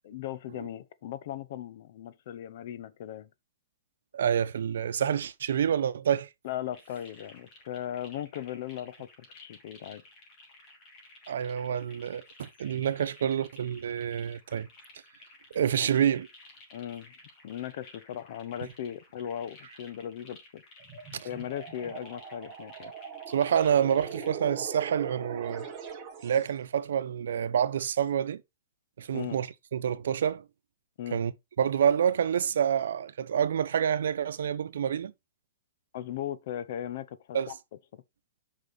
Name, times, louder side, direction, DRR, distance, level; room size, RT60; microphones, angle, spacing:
voice 1, 0.1-3.3 6.4-10.0 16.7-17.1 17.4-20.6 21.2-22.9 29.1-29.4 31.0-31.2 35.9-37.5 37.9-38.0, left 10 dB, 50° left, 0.8 m, -38 dB
voice 2, 4.1-6.3 11.3-14.7 15.5-16.3 21.1-21.3 23.3-25.7 26.2-28.4 29.0-29.5 29.7-30.4 31.1-31.3 31.6-35.1 37.3-37.5, right 8 dB, 80° right, 0.9 m, -27 dB
sound 1, 6.7-24.3, left 2 dB, 25° left, 2.9 m, -54 dB
sound 2, 20.8-26.6, right 6 dB, 25° right, 2.1 m, -42 dB
8.2 x 5.4 x 4.1 m
hypercardioid pair, 165°, 0 cm